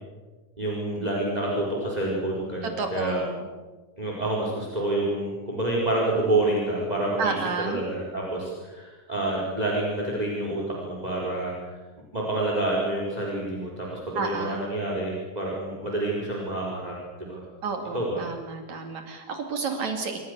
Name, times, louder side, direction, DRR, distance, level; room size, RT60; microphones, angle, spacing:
voice 1, 0.6-3.2 4.0-7.4 7.7-11.7 12.1-17.4 17.9-18.2, right 2 dB, 10° right, -2 dB, 5.1 m, -28 dB
voice 2, 2.6-3.5 7.2-7.8 14.2-14.7 17.6-20.2, right 4 dB, 70° right, 4 dB, 3.5 m, -31 dB
27.5 x 25.0 x 6.8 m, 1.3 s
omnidirectional pair, 3.4 m